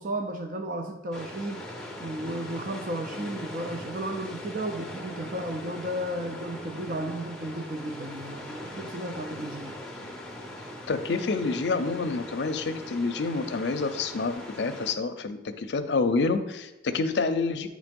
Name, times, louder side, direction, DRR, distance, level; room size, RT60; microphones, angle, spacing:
voice 1, 0.0-1.7 2.0-9.8, right 1 dB, 45° right, 5 dB, 0.5 m, -34 dB
sound 1, 1.1-14.9, left 1 dB, 5° left, 0.6 m, -41 dB
voice 2, 10.9-17.7, left 3 dB, 70° left, 8 dB, 0.5 m, -28 dB
9.2 x 3.1 x 5.2 m, 1.0 s
head